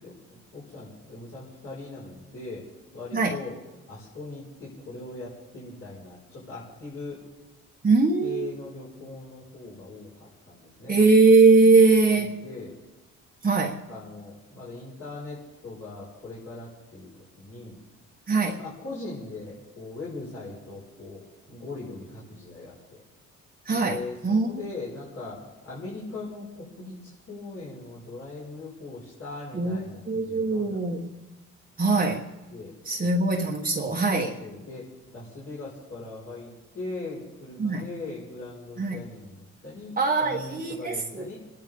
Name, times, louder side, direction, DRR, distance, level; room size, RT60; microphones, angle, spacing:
voice 1, 0.0-2.7 2.9-3.6 3.9-7.2 8.2-11.0 12.2-12.8 13.9-17.1 17.4-17.8 18.6-21.2 21.5-23.0 23.7-31.0 32.5-33.1 34.1-36.5 36.7-41.4, left 3 dB, 50° left, -7 dB, 5.5 m, -40 dB
voice 2, 7.8-8.6 10.9-12.4 13.4-13.8 18.3-18.6 23.7-24.5 29.5-29.8 30.1-31.1 31.8-32.2 32.9-34.3 37.6-37.9 38.8-39.0 40.0-41.3, right 3 dB, 30° right, 0 dB, 1.3 m, -21 dB
27.5 x 10.5 x 3.8 m, 1.1 s
cardioid pair, 90°, 30 cm